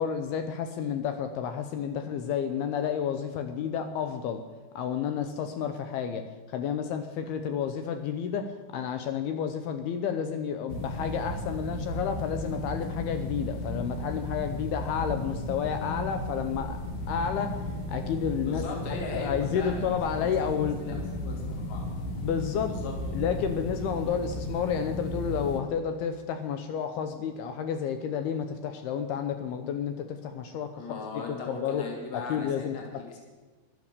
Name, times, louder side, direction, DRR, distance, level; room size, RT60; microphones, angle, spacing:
voice 1, 0.0-4.4 4.8-6.2 6.5-16.8 17.1-17.6 17.9-18.6 19.1-21.0 22.2-22.7 23.1-31.8 32.1-33.0, left 7 dB, 75° left, 7 dB, 2.4 m, -31 dB
sound 1, 10.7-25.6, left 1 dB, 60° left, 2.2 m, -35 dB
voice 2, 18.4-19.8 20.1-20.5 20.8-21.8 22.7-23.2 30.8-33.2, left 3 dB, 40° left, 0 dB, 3.4 m, -39 dB
13.5 x 11.5 x 6.8 m, 1.2 s
omnidirectional pair, 5.4 m